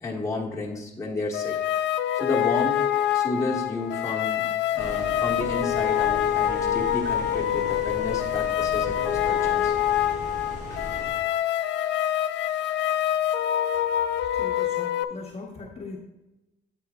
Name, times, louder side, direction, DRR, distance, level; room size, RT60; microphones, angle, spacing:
voice 1, 0.0-1.6 2.2-2.8 3.1-4.4 4.7-9.7 10.7-10.8, left 2 dB, 15° left, -3 dB, 1.3 m, -31 dB
sound 1, 1.3-15.0, left 11 dB, 85° left, 0.5 m, -25 dB
sound 2, 4.8-11.1, right 1 dB, 45° right, 1.6 m, -39 dB
voice 2, 14.3-16.0, left 3 dB, 35° left, -1 dB, 1.1 m, -39 dB
8.5 x 7.9 x 2.4 m, 0.99 s
cardioid pair, 165°, 18 cm